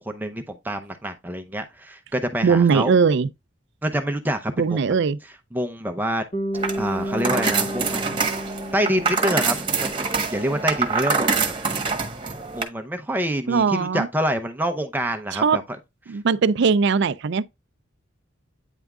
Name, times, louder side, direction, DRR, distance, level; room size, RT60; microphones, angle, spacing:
voice 1, 0.0-2.9 3.8-4.8 5.5-6.2 6.8-8.2 8.7-11.5 12.5-15.6, equal, 10° right, 0.7 m, -26 dB
voice 2, 2.4-3.3 4.6-5.2 13.5-14.1 15.3-15.6 16.1-17.4, right 5 dB, 65° right, 0.4 m, -20 dB
Bass guitar, 6.3-10.6, equal, 40° left, 1.3 m, -32 dB
sound 1, 6.5-12.6, right 5 dB, 25° right, 1.3 m, -25 dB
9.1 x 3.5 x 3.6 m
head